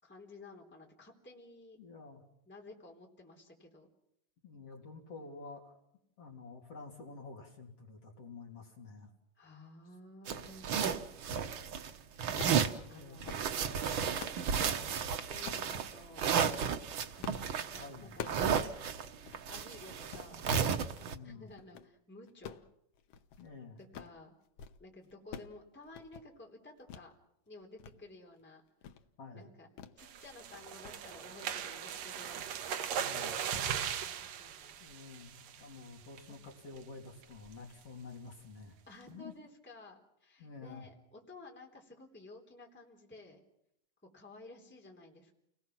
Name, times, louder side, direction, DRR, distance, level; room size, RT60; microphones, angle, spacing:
voice 1, 0.0-1.8 2.5-3.9 9.4-10.9 11.7-12.0 12.3-12.5 12.9-16.3 17.3-18.8 19.5-20.5 21.2-22.6 23.8-24.3 24.8-27.2 27.4-28.6 29.3-29.7 29.9-32.6 33.9-35.1 36.3-36.4 38.9-43.4 44.1-45.3, left 2 dB, 5° left, 0 dB, 3.2 m, -54 dB
voice 2, 1.8-2.2 4.4-5.8 6.2-9.1 12.8-13.3 17.8-18.2 21.1-21.5 23.4-23.8 29.2-29.5 33.0-33.4 34.8-38.8 39.1-39.3 40.4-40.9, left 4 dB, 45° left, 0 dB, 4.0 m, -49 dB
sound 1, 10.3-11.9 12.2-12.8 13.2-21.1, right 7 dB, 90° right, 1.1 m, -33 dB
sound 2, 12.4-12.6 13.1-13.5 13.9-14.5 15.4-15.7 16.3-16.6 17.2-17.5 17.8-18.5 18.9-19.0 19.3-19.4 19.9-20.3 20.8-21.1 21.5-21.9 22.3-23.5 23.8-24.2 24.5-24.8 25.0-25.6 25.8-26.3 26.9-27.1 27.5-27.9 28.3-28.4 28.8-29.0 29.8-30.0 30.3-30.5 30.8-31.0, left 8 dB, 65° left, 1.6 m, -47 dB
sound 3, 30.0-35.8 36.2-36.4 36.8-36.9 37.2-37.5, right 8 dB, 65° right, 2.1 m, -39 dB
30.0 x 20.0 x 6.1 m, 0.76 s
omnidirectional pair, 3.9 m